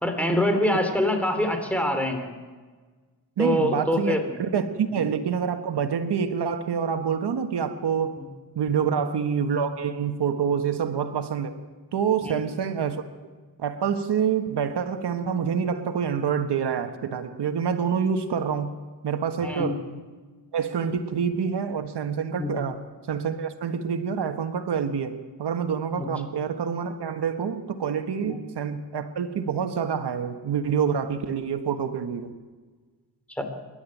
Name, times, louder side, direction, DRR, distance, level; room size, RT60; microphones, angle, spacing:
voice 1, 0.0-2.3 3.4-4.4 4.9-5.0 8.8-9.0 12.2-12.3 19.4-19.7 22.4-22.5 26.0-26.1 28.2-28.4 33.4-33.5, left 1 dB, 5° left, 6 dB, 3.7 m, -25 dB
voice 2, 3.4-8.2 8.5-11.5 11.9-13.0 13.6-18.7 19.0-19.8 20.5-32.3, right 7 dB, 90° right, 8 dB, 1.4 m, -27 dB
27.5 x 11.5 x 9.1 m, 1.4 s
cardioid pair, 75°, 39 cm